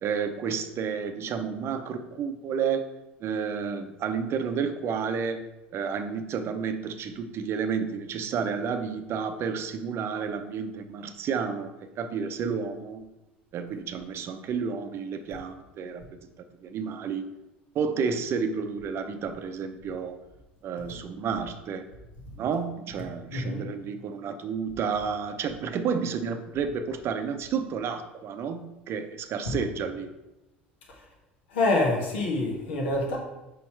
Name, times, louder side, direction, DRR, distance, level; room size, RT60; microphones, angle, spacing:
voice 1, 0.0-2.9 3.2-5.5 5.7-13.1 13.5-16.3 16.6-17.3 17.7-20.2 20.6-21.9 22.4-28.6 28.9-30.1, right 6 dB, 45° right, 8 dB, 0.6 m, -31 dB
voice 2, 23.3-23.6 31.5-33.2, left 2 dB, 75° left, -1 dB, 1.5 m, -26 dB
5.4 x 4.3 x 4.4 m, 0.97 s
figure-of-eight pair, 70°, 6 cm